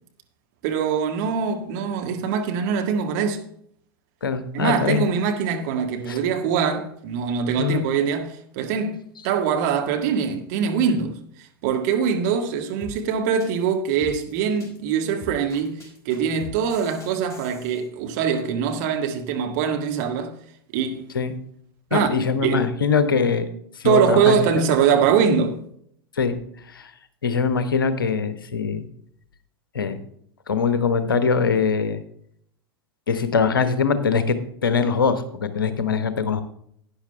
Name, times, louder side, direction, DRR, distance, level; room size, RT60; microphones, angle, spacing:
voice 1, 0.6-3.4 4.5-11.2 11.6-20.4 20.7-21.1 21.9-22.1 22.4-22.7 23.8-25.6, right 7 dB, 50° right, 1.7 m, -23 dB
voice 2, 4.2-5.1 6.1-6.2 7.6-7.9 21.1-21.3 21.9-23.5 23.8-24.6 26.1-26.4 26.7-26.9 27.2-28.8 29.7-30.0 30.5-32.0 33.1-34.4 34.6-36.4, left 5 dB, 70° left, 1.1 m, -22 dB
sound 1, 12.8-17.8, right 2 dB, 25° left, 4.3 m, -42 dB
11.5 x 10.0 x 3.4 m
figure-of-eight pair, 85°, 12 cm